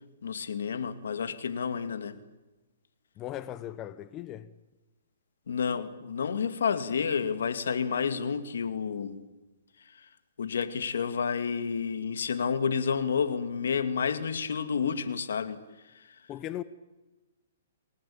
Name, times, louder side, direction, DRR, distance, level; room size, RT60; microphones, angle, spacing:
voice 1, 0.2-2.2 5.5-9.2 10.4-15.6 15.9-16.1, left 6 dB, 80° left, 2.3 m, -30 dB
voice 2, 3.2-4.5 16.3-16.6, left 12 dB, 25° left, 0.9 m, -38 dB
27.5 x 19.0 x 8.7 m
hypercardioid pair, 145°, 0 cm